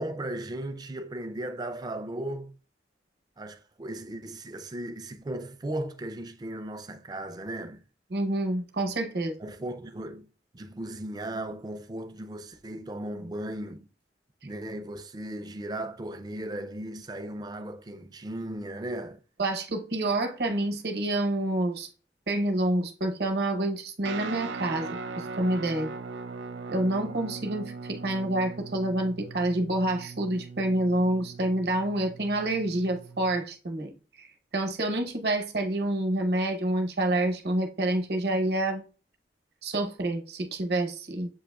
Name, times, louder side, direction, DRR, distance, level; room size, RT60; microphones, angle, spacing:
voice 1, 0.0-2.6 3.4-7.8 9.4-13.9 14.4-19.2, right 1 dB, 25° right, 0.4 m, -36 dB
voice 2, 8.1-9.4 19.4-21.9 22.3-25.9 26.7-34.3 34.5-38.8 39.6-41.3, right 1 dB, 65° right, 0.9 m, -28 dB
Guitar, 24.0-33.4, right 4 dB, 85° right, 0.4 m, -40 dB
7.0 x 2.8 x 2.2 m
head